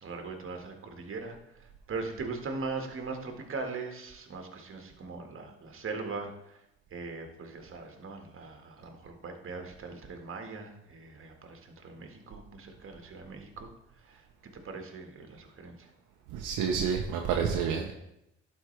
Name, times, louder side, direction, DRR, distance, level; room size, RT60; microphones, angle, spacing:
voice 1, 0.0-6.6 6.9-13.7 14.0-15.9, right 4 dB, 40° right, 4 dB, 1.7 m, -40 dB
voice 2, 16.3-17.9, right 6 dB, 70° right, 2 dB, 0.9 m, -29 dB
11.5 x 4.5 x 3.3 m, 0.84 s
hypercardioid pair, 65°, 33 cm